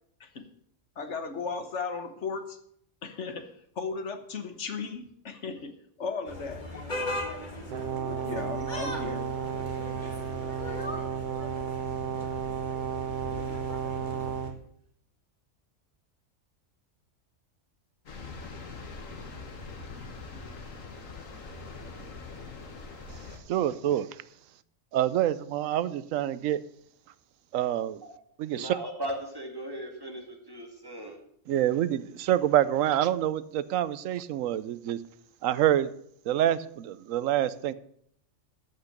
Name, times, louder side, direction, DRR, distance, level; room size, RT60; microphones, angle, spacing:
voice 1, 1.0-2.6 3.0-3.5 3.8-5.7 6.0-6.6 8.1-9.3, left 5 dB, 65° left, 8 dB, 1.5 m, -35 dB
sound 1, 6.3-14.5, left 1 dB, 35° left, 1.9 m, -38 dB
Brass instrument, 7.7-14.6, right 8 dB, 50° right, 0.9 m, -33 dB
sound 2, 18.1-23.4, left 3 dB, 85° left, 1.9 m, -42 dB
voice 2, 23.5-24.1 24.9-26.6 27.5-28.0 28.4-28.8 31.5-35.0 35.4-35.9 36.3-37.7, right 12 dB, 90° right, 17 dB, 1.0 m, -26 dB
voice 3, 28.5-31.2, right 1 dB, 20° right, 2 dB, 2.1 m, -37 dB
14.0 x 5.9 x 6.5 m, 0.68 s
omnidirectional pair, 1.3 m